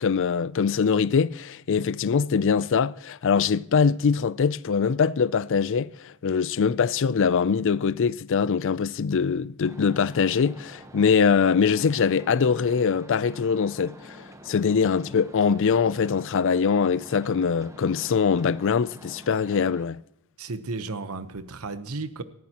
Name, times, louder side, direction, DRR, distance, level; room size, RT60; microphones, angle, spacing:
voice 1, 0.0-20.0, left 6 dB, 60° left, 0.4 m, -23 dB
sound 1, 9.6-19.9, equal, 15° right, 1.0 m, -47 dB
voice 2, 20.4-22.2, right 3 dB, 80° right, 1.0 m, -33 dB
19.0 x 14.5 x 2.9 m
head